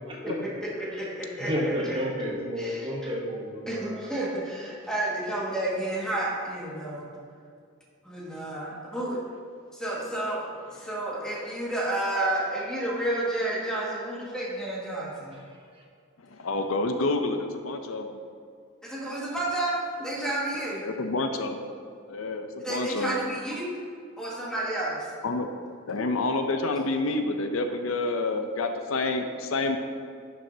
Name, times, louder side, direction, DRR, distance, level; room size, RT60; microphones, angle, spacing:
voice 1, 0.0-0.4 1.4-4.1, equal, 25° right, -2 dB, 1.1 m, -31 dB
voice 2, 0.6-2.0 2.6-2.9 3.7-7.1 8.0-9.2 9.7-15.4 18.8-20.8 22.6-23.7 24.2-25.1, right 1 dB, 5° left, -6 dB, 1.8 m, -31 dB
voice 3, 16.3-18.1 20.8-21.6 22.1-23.2 25.2-25.5 25.9-29.8, left 2 dB, 75° left, 6 dB, 0.6 m, -28 dB
11.0 x 6.4 x 2.8 m, 2.2 s
head